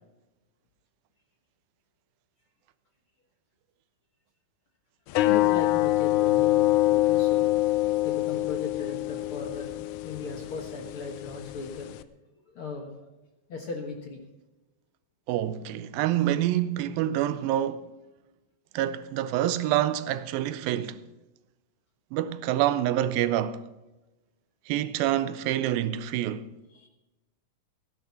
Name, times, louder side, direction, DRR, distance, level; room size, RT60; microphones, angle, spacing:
sound 1, 5.1-12.0, left 17 dB, 80° left, 1.7 m, -25 dB
voice 1, 5.2-7.5 8.0-11.9 12.5-12.9 13.5-14.2 26.7-26.9, left 4 dB, 55° left, 1.6 m, -37 dB
voice 2, 15.3-17.9 18.7-21.0 22.1-23.6 24.7-26.5, right 12 dB, 85° right, 2.5 m, -27 dB
15.5 x 11.0 x 5.8 m
omnidirectional pair, 4.0 m